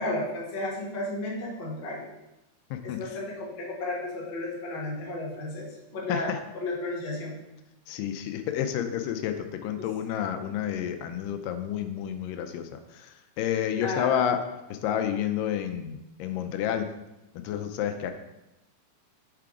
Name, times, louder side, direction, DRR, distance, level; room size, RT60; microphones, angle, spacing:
voice 1, 0.0-2.1 2.8-5.7 5.9-6.3 6.5-7.3 9.8-9.9 13.8-14.2, left 2 dB, 40° left, -6 dB, 0.9 m, -33 dB
voice 2, 7.9-14.4 14.7-16.9 17.4-18.1, left 9 dB, 85° left, 7 dB, 2.2 m, -30 dB
6.7 x 4.8 x 3.6 m, 0.95 s
omnidirectional pair, 3.8 m